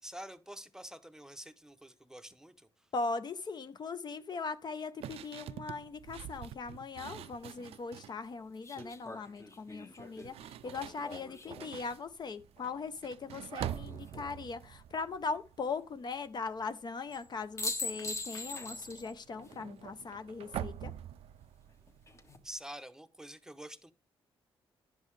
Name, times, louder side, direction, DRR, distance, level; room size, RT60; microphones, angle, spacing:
voice 1, 0.0-2.9 22.4-23.9, right 1 dB, 5° right, 0.7 m, -47 dB
voice 2, 2.9-20.9, left 4 dB, 45° left, 0.6 m, -40 dB
sound 1, 5.0-8.2 8.6-9.0 9.9-16.2 16.4-16.8 17.1-22.6, right 11 dB, 85° right, 0.4 m, -46 dB
sound 2, 7.2-7.3 8.6-11.9 13.7-14.3 17.1-17.3 17.6-19.1 19.4-19.5 21.9-22.4, left 3 dB, 30° left, 1.2 m, -42 dB
10.5 x 5.4 x 3.1 m
cardioid pair, 85°, 10 cm